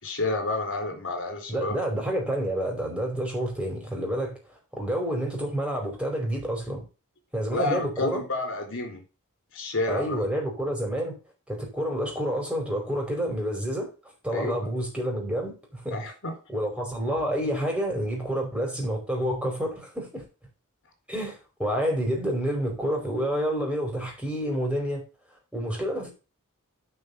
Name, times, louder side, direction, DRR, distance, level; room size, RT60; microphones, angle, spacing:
voice 1, 0.0-1.7 7.5-9.0 9.5-10.3 14.3-14.5 15.9-16.3, left 3 dB, 60° left, 4.2 m, -30 dB
voice 2, 1.5-4.4 4.7-6.8 7.3-8.2 9.9-11.2 11.5-13.9 14.2-16.0 16.5-20.3 21.1-25.0 25.5-26.1, equal, 5° right, 4.8 m, -28 dB
9.6 x 5.6 x 7.0 m
head